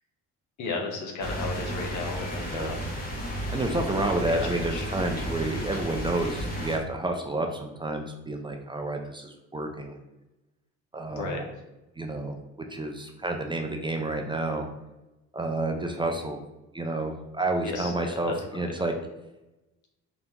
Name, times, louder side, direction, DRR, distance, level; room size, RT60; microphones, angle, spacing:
voice 1, 0.6-2.9 4.0-4.9 11.1-11.4 17.6-18.6, left 3 dB, 75° left, 1 dB, 1.0 m, -34 dB
sound 1, 1.2-6.8, equal, 30° left, 1.3 m, -33 dB
voice 2, 3.5-10.0 10.9-11.4 12.0-12.3 12.7-14.7 15.3-16.4 16.7-18.9, right 2 dB, 15° right, 3 dB, 0.5 m, -30 dB
3.9 x 2.8 x 3.5 m, 1.0 s
cardioid pair, 90°, 30 cm